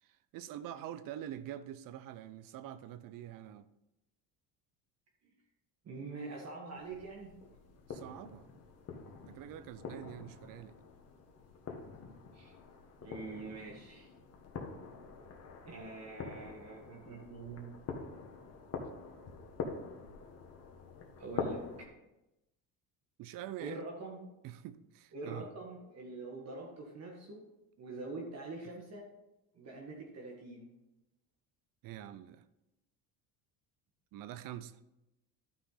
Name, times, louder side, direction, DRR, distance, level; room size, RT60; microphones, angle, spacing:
voice 1, 0.0-3.7 7.9-8.5 9.3-10.7 23.2-23.9 24.4-25.5 31.8-32.4 34.1-34.8, right 11 dB, 55° right, 0.6 m, -45 dB
voice 2, 5.8-7.3 12.3-12.5 13.0-14.1 15.6-17.8 21.2-21.6 23.6-24.2 25.1-27.4 27.8-29.1 29.5-30.7, right 3 dB, 40° right, 1.6 m, -44 dB
sound 1, 6.7-21.9, left 5 dB, 40° left, 1.5 m, -45 dB
11.5 x 5.8 x 4.0 m
cardioid pair, 120°, 39 cm